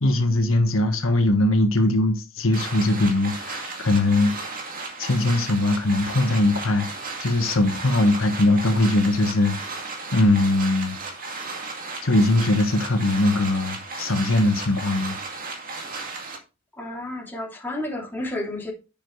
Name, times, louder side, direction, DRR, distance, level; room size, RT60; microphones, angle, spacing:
voice 1, 0.0-4.3 5.0-6.9 7.2-9.8 10.1-11.0 12.0-15.2, left 2 dB, 80° left, 1.4 m, -21 dB
sound 1, 2.5-16.4, right 3 dB, 45° right, 2.2 m, -35 dB
voice 2, 16.8-18.7, left 1 dB, 10° left, 3.0 m, -31 dB
10.5 x 7.1 x 3.2 m
head